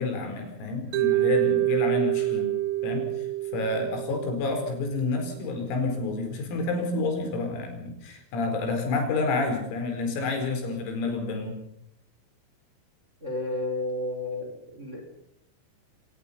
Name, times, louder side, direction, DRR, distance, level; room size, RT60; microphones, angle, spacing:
voice 1, 0.0-2.6 2.8-3.3 3.5-11.6, left 3 dB, 85° left, 5 dB, 7.2 m, -29 dB
Mallet percussion, 0.9-5.0, right 16 dB, 85° right, 4.1 m, -27 dB
voice 2, 13.2-15.0, left 2 dB, 15° right, 3 dB, 4.4 m, -32 dB
25.0 x 19.0 x 5.6 m, 0.75 s
omnidirectional pair, 5.9 m